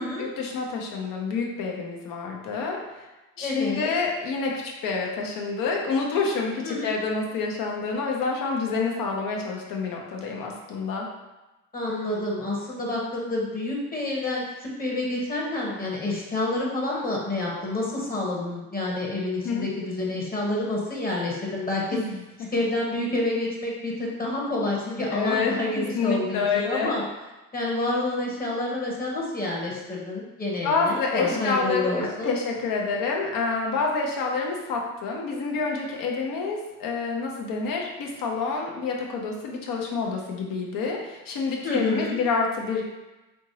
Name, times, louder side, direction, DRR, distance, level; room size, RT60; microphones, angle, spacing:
voice 1, 0.2-3.1 3.4-4.5 4.8-11.1 19.4-19.7 21.9-22.5 25.1-27.0 30.6-42.8, left 4 dB, 60° left, 0 dB, 0.8 m, -28 dB
voice 2, 3.4-3.9 6.6-6.9 11.7-21.8 22.5-27.0 27.5-32.3 41.6-42.1, left 2 dB, 25° left, -3 dB, 1.1 m, -28 dB
3.5 x 2.9 x 2.7 m, 1.1 s
supercardioid pair, 70°, 37 cm